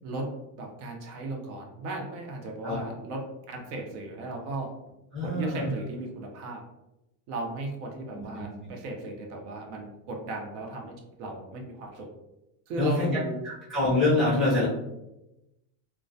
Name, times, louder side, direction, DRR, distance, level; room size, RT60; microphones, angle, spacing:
voice 1, 0.6-3.2 3.5-4.7 5.2-6.6 7.3-10.9 11.2-12.1 12.7-13.4, right 1 dB, 75° right, 1 dB, 0.8 m, -35 dB
voice 2, 5.1-5.7 8.1-8.4 12.8-13.1 13.7-14.7, left 2 dB, ahead, -11 dB, 0.4 m, -25 dB
2.2 x 2.2 x 2.6 m, 0.91 s
cardioid pair, 175°, 47 cm